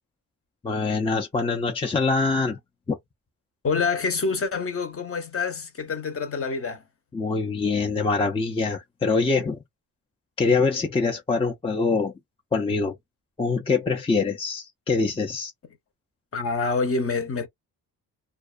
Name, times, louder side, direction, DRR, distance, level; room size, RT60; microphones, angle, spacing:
voice 1, 0.6-2.6 2.9-3.0 7.1-9.6 10.4-12.1 12.5-12.9 13.4-15.5, left 4 dB, 15° left, 0.4 m, -24 dB
voice 2, 3.6-6.8 16.3-17.5, left 4 dB, 35° left, 0.8 m, -26 dB
2.4 x 2.2 x 2.4 m
cardioid pair, 90°, 39 cm